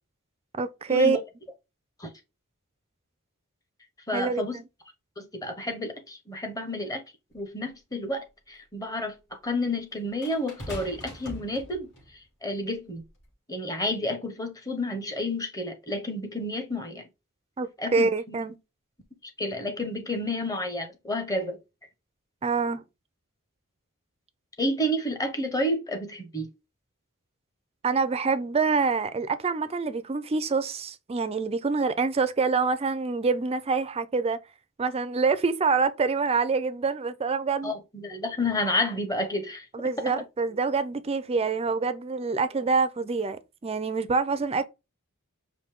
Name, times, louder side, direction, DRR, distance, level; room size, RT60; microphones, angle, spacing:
voice 1, 0.6-1.2 4.1-4.6 17.6-18.6 22.4-22.8 27.8-34.4 34.8-37.7 39.7-44.6, right 4 dB, 30° right, 0.4 m, -26 dB
voice 2, 4.1-4.6 5.2-7.0 7.3-11.9 12.4-13.0 13.5-17.1 17.8-18.4 19.4-21.6 24.6-26.5 37.6-39.6, left 1 dB, 15° left, 1.0 m, -30 dB
sound 1, 7.3-7.4 10.2-12.1 13.0-13.2, equal, 55° left, 3.0 m, -41 dB
5.1 x 2.7 x 3.6 m
head